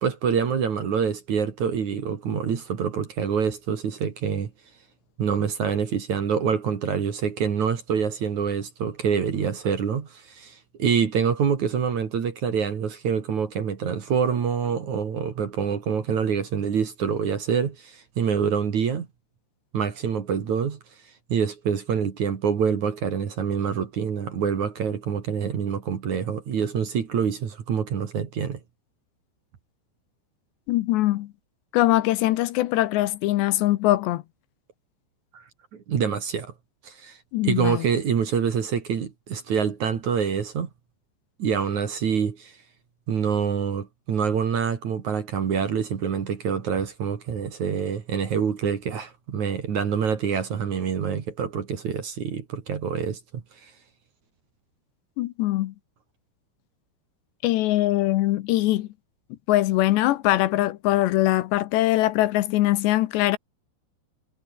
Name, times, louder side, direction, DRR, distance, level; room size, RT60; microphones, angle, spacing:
voice 1, 0.0-4.5 5.2-19.1 19.7-20.8 21.3-28.6 35.3-35.4 35.7-36.5 36.8-37.2 37.4-40.7 41.4-42.5 43.1-53.7, right 7 dB, 45° right, 3.1 m, -26 dB
voice 2, 30.7-31.3 31.7-34.2 37.3-37.9 55.2-55.7 57.4-58.9 59.5-63.4, left 16 dB, 75° left, 3.0 m, -22 dB
omnidirectional pair, 5.3 m